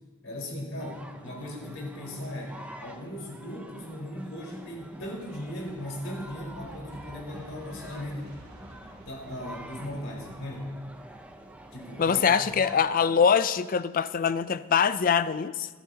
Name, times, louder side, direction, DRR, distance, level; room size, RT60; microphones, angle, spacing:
voice 1, 0.2-8.4 9.0-10.8 11.7-12.5, left 1 dB, 75° left, -2 dB, 4.4 m, -38 dB
sound 1, 0.8-13.4, right 1 dB, 5° right, 0.6 m, -46 dB
Aircraft, 4.7-12.7, equal, 50° right, 3.4 m, -52 dB
voice 2, 12.0-15.7, left 6 dB, 40° left, 14 dB, 0.4 m, -23 dB
22.5 x 12.0 x 2.9 m, 1.4 s
head